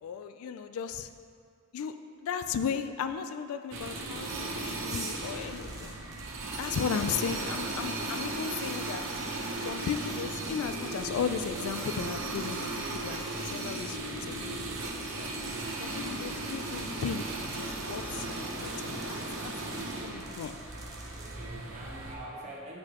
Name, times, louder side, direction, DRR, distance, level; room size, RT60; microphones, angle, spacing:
voice 1, 0.0-1.1 1.7-1.9 2.2-5.9 6.6-9.0 9.6-14.6 14.8-15.3 15.8-20.5, left 7 dB, 75° left, 9 dB, 0.3 m, -36 dB
sound 1, 3.7-22.1, right 2 dB, 60° right, 0.7 m, -36 dB
sound 2, 4.9-21.4, right 3 dB, 15° right, 0.7 m, -49 dB
voice 2, 7.1-7.5 21.2-22.8, right 1 dB, 30° right, -4 dB, 1.1 m, -44 dB
9.4 x 4.7 x 2.9 m, 2.3 s
head